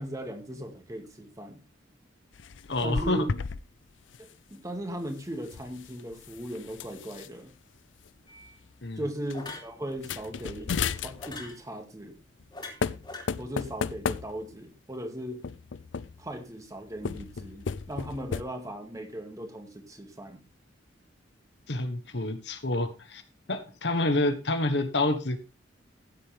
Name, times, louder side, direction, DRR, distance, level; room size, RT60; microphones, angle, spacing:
voice 1, 0.0-1.6 2.8-3.3 4.2-7.5 9.0-12.2 13.4-15.4 16.2-20.5, right 1 dB, 20° right, 4 dB, 2.2 m, -38 dB
sound 1, 2.3-3.6 3.9-4.2 5.3-7.3 8.0-8.1 8.4-8.7 9.3-9.4 9.9-11.5 12.4-12.5 12.8-14.7 15.4-16.3 17.0-18.4, left 5 dB, 85° left, 0.5 m, -34 dB
voice 2, 2.7-3.3 8.8-9.0 21.7-23.2 23.5-25.4, left 2 dB, 65° left, 8 dB, 1.3 m, -28 dB
sound 2, 8.3-8.5 9.3-9.7 11.2-11.6 12.5-13.2, left 3 dB, 25° left, 3.1 m, -41 dB
15.5 x 7.8 x 3.4 m, 0.30 s
head